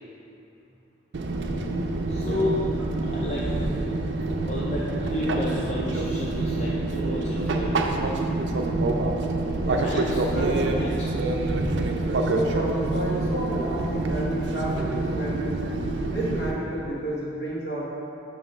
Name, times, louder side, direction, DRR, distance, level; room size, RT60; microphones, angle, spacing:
Fixed-wing aircraft airplane, 1.1-16.5, right 2 dB, 75° right, 0.4 m, -26 dB
voice 1, 2.1-3.7 4.4-7.9 9.8-10.2 10.7-11.1, left 1 dB, 35° left, -5 dB, 0.5 m, -32 dB
voice 2, 9.6-10.8 11.4-11.5 12.2-15.5 16.1-17.8, right 1 dB, 55° left, -6 dB, 1.4 m, -31 dB
7.3 x 3.0 x 5.4 m, 2.7 s
head